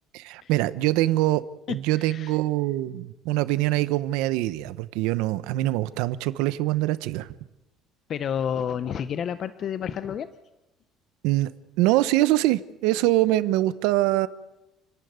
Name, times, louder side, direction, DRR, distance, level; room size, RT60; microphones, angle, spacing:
voice 1, 0.1-1.4 1.7-7.3 11.2-11.5 11.8-14.3, right 16 dB, 90° right, 15 dB, 1.0 m, -24 dB
voice 2, 2.0-2.4 8.1-10.3, left 8 dB, 35° left, 13 dB, 0.7 m, -30 dB
28.5 x 12.0 x 9.5 m, 0.98 s
cardioid pair, 170°, 0 cm